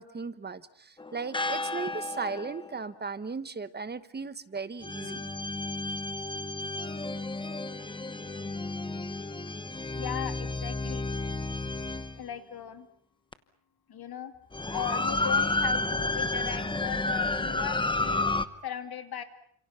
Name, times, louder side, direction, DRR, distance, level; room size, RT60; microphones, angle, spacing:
voice 1, 0.0-5.3, right 4 dB, 20° right, 13 dB, 1.2 m, -37 dB
sound 1, 1.0-2.8 4.8-12.2 13.3-13.4 14.5-18.4, left 2 dB, 10° left, 1.0 m, -31 dB
voice 2, 10.0-11.1 12.2-12.9 13.9-14.3 14.7-19.2, left 9 dB, 50° left, 8 dB, 2.7 m, -38 dB
29.0 x 27.5 x 5.8 m, 0.67 s
cardioid pair, 145°, 47 cm